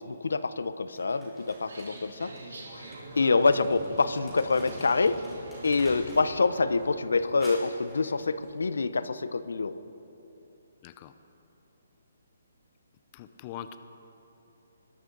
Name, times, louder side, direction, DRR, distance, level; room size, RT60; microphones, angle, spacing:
voice 1, 0.0-2.9 3.2-5.2 5.6-9.8, left 4 dB, 90° left, 14 dB, 0.6 m, -26 dB
Crumpling crinkling, 0.9-6.3 6.6-8.6, equal, 5° left, 3.5 m, -46 dB
sound 1, 1.6-6.9, right 2 dB, 85° right, 2.9 m, -47 dB
voice 2, 13.1-13.8, left 10 dB, 25° left, 11 dB, 0.5 m, -42 dB
21.0 x 11.5 x 3.9 m, 3.0 s
hypercardioid pair, 160°, 0 cm